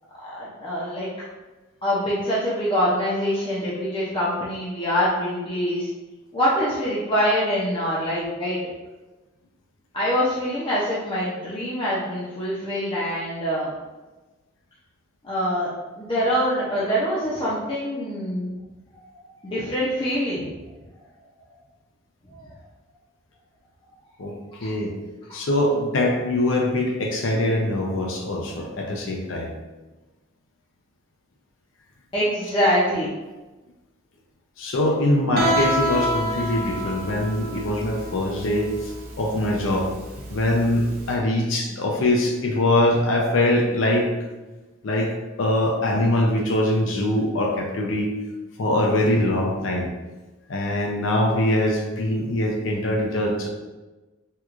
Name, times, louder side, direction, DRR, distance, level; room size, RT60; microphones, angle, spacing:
voice 1, 0.3-1.1 1.8-5.9 6.3-8.6 9.9-13.8 15.2-15.7 15.9-18.5 18.9-20.6 22.3-22.5 24.6-24.8 25.3-25.4 32.1-33.1, equal, 25° left, -8 dB, 0.6 m, -24 dB
voice 2, 24.6-24.9 25.3-29.5 34.6-38.9 39.2-39.9 40.3-44.1 44.8-45.1 45.4-48.1 48.6-49.9 50.5-53.5, left 1 dB, 70° left, 1 dB, 0.5 m, -23 dB
Guitar, 35.4-41.1, equal, 45° right, 0.5 m, -27 dB
4.5 x 2.3 x 2.4 m, 1.2 s
head